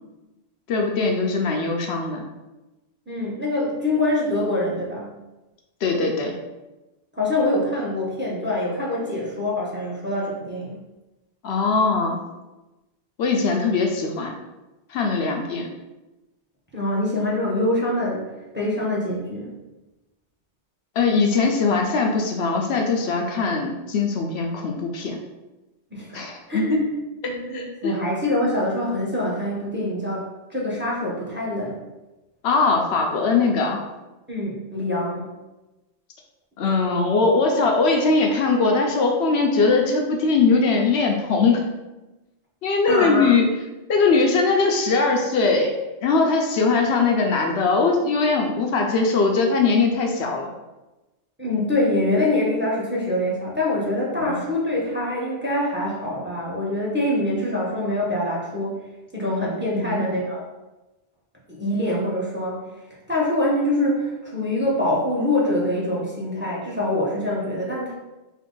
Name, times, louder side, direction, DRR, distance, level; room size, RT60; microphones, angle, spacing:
voice 1, 0.7-2.3 5.8-6.3 11.4-12.2 13.2-14.3 14.9-15.7 21.0-25.2 26.1-26.8 27.5-27.9 32.4-33.8 36.6-41.7 42.6-43.5 43.9-45.7 46.0-50.5 54.2-54.4 59.7-60.1, left 4 dB, 75° left, 2 dB, 0.8 m, -21 dB
voice 2, 3.1-5.1 7.1-10.8 16.7-18.2 18.5-19.5 25.9-26.9 27.2-30.2 30.5-31.8 34.3-35.3 42.9-43.3 51.4-58.8 59.1-60.4 61.5-62.6 63.1-67.9, left 1 dB, 10° right, -4 dB, 0.8 m, -24 dB
3.6 x 2.8 x 3.8 m, 1.1 s
omnidirectional pair, 1.1 m